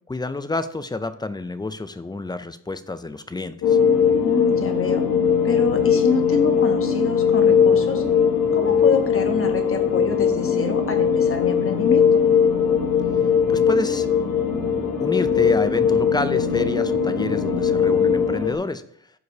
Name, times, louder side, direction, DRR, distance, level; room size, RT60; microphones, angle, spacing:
voice 1, 0.1-3.8 8.8-8.9 13.5-14.1 15.0-18.8, left 2 dB, 15° left, 12 dB, 0.3 m, -28 dB
sound 1, 3.6-18.6, left 7 dB, 80° left, 1.4 m, -20 dB
voice 2, 4.2-5.0 5.4-8.0 8.5-12.2, left 4 dB, 40° left, 5 dB, 1.0 m, -26 dB
12.5 x 4.8 x 2.7 m, 0.66 s
wide cardioid pair, 135°, 34 cm